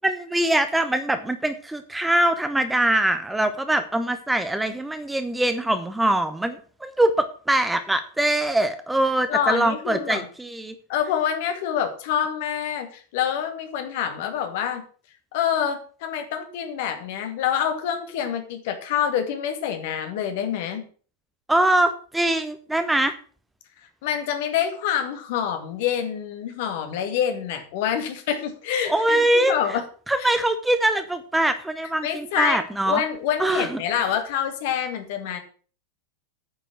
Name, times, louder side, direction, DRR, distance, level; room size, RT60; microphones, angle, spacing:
voice 1, 0.0-10.7 21.5-23.1 28.9-29.8 30.1-33.0 33.4-33.8, right 1 dB, 5° right, 9 dB, 0.9 m, -23 dB
voice 2, 9.3-10.3 10.9-14.8 15.3-20.9 24.0-29.8 30.2-30.3 32.0-35.4, left 9 dB, 50° left, 7 dB, 2.2 m, -26 dB
9.3 x 6.8 x 7.5 m, 0.41 s
figure-of-eight pair, 90°, 0 cm